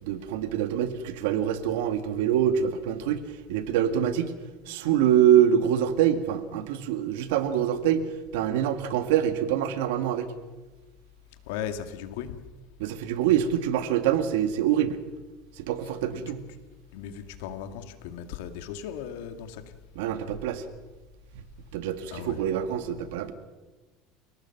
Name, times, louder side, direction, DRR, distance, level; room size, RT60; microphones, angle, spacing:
voice 1, 0.0-4.3 4.7-8.1 8.3-10.3 12.8-15.0 15.6-16.4 20.0-20.7 21.7-23.3, right 10 dB, 85° right, 9 dB, 2.1 m, -25 dB
voice 2, 11.5-12.4 15.8-16.2 16.9-19.6 22.0-22.4, left 9 dB, 80° left, 8 dB, 2.2 m, -37 dB
29.5 x 18.5 x 6.0 m, 1.2 s
supercardioid pair, 145°, 0 cm